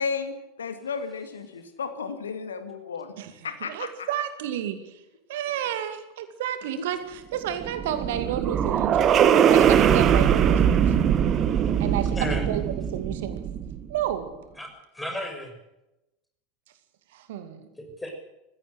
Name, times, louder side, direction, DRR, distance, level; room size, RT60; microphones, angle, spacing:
voice 1, 0.0-3.2 3.4-4.1 6.8-6.9, left 5 dB, 70° left, 9 dB, 2.0 m, -33 dB
voice 2, 3.7-5.0 5.3-10.9 11.8-13.5 13.9-14.4 17.1-17.7, right 10 dB, 60° right, 10 dB, 2.2 m, -31 dB
sound 1, 7.4-13.9, right 8 dB, 35° right, 1.5 m, -21 dB
voice 3, 12.1-12.5 14.6-15.5 17.8-18.1, left 1 dB, 5° left, 4 dB, 6.3 m, -34 dB
20.5 x 16.0 x 8.0 m, 0.93 s
figure-of-eight pair, 80°, 0 cm